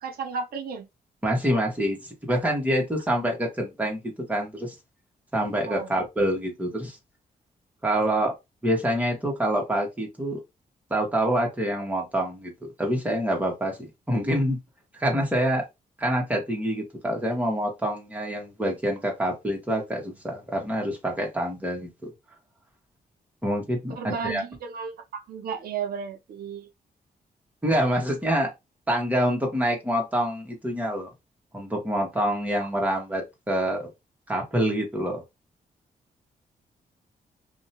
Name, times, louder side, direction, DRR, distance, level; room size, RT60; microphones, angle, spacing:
voice 1, 0.0-0.9 5.7-5.9 23.9-26.7 32.6-32.7, right 6 dB, 80° right, 0.6 m, -34 dB
voice 2, 1.2-4.7 5.3-7.0 7.8-8.3 8.6-10.4 10.9-12.5 12.8-14.6 15.0-15.6 16.0-21.9 23.4-24.4 27.6-28.5 28.9-31.1 31.5-33.9 34.3-35.2, equal, 10° right, 1.0 m, -26 dB
2.6 x 2.1 x 2.8 m
wide cardioid pair, 140°, 15 cm